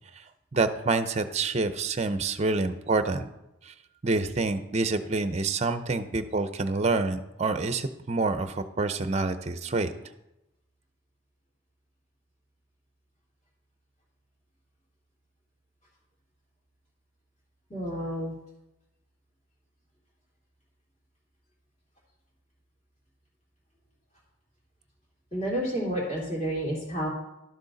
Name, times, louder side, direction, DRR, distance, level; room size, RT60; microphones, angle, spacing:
voice 1, 0.5-3.3 3.6-3.7 4.0-9.9, right 3 dB, 30° right, 11 dB, 0.6 m, -27 dB
voice 2, 17.7-18.3 25.3-27.1, equal, 30° left, -4 dB, 2.7 m, -30 dB
12.0 x 6.6 x 3.9 m, 0.90 s
head